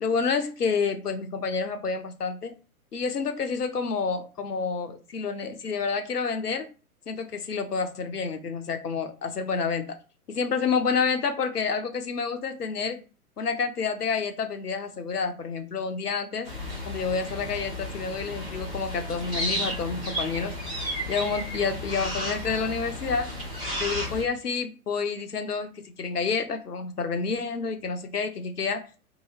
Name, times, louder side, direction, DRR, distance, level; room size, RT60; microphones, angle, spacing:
voice 1, 0.0-2.5 2.9-6.7 7.1-9.9 10.3-13.0 13.4-16.5 16.9-20.5 21.1-23.3 23.8-28.8, left 5 dB, 85° left, 7 dB, 0.7 m, -29 dB
sound 1, 16.4-24.2, left 1 dB, 5° right, 0.3 m, -33 dB
2.8 x 2.6 x 2.8 m, 0.34 s
figure-of-eight pair, 110°, 45 cm